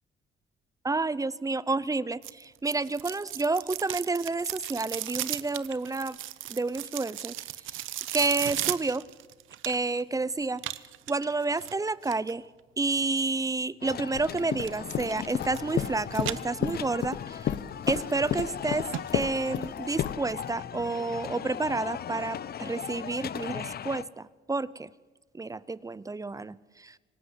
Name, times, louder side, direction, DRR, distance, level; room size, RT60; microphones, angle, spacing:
voice 1, 0.8-6.2 6.5-7.3 8.1-9.0 9.6-10.6 11.1-12.4 12.8-17.5 17.9-18.9 19.1-24.9 25.3-26.9, right 3 dB, 15° right, 19 dB, 0.7 m, -30 dB
sound 1, 2.2-10.0 10.6-12.3 14.2-14.7 15.1-15.9 16.2-17.0 17.4-17.5 18.2-18.3 18.6-18.7 18.9-19.0 19.4-19.5, right 14 dB, 80° right, 0.8 m, -36 dB
sound 2, 13.8-24.0, left 9 dB, 50° left, 0.8 m, -39 dB
sound 3, 14.1-14.3 14.5-17.2 17.5-20.1, left 10 dB, 70° left, 1.1 m, -30 dB
26.5 x 18.0 x 8.2 m, 1.3 s
cardioid pair, 90°, 20 cm